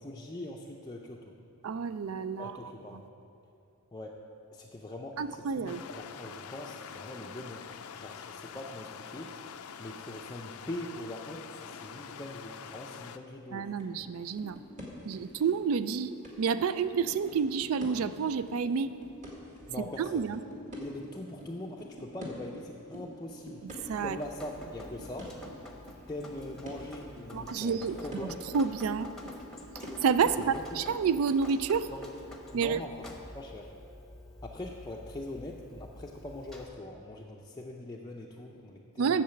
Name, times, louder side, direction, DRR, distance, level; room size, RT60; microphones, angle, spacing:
voice 1, 0.0-1.3 2.4-3.0 3.9-4.2 4.5-7.7 7.9-9.3 9.8-13.7 19.7-20.3 20.8-23.6 24.0-25.3 26.1-28.4 30.2-30.8 31.9-32.1 32.5-33.1 33.3-33.7 34.4-39.2, left 1 dB, 20° left, -1 dB, 0.5 m, -42 dB
voice 2, 1.6-2.7 5.2-5.8 13.5-14.6 15.1-16.1 16.4-18.9 20.0-20.4 23.6-24.2 27.3-28.3 28.5-29.1 29.7-31.9 32.5-32.8 39.0-39.2, right 6 dB, 65° right, 13 dB, 0.4 m, -29 dB
sound 1, 5.7-13.2, left 7 dB, 70° left, 0.4 m, -45 dB
sound 2, 13.8-14.1 14.4-15.9 16.2-21.5 21.8-32.2, equal, 35° right, 1.8 m, -47 dB
Drip, 23.7-36.7, left 1 dB, ahead, 0.9 m, -49 dB
8.7 x 6.7 x 7.7 m, 2.7 s
head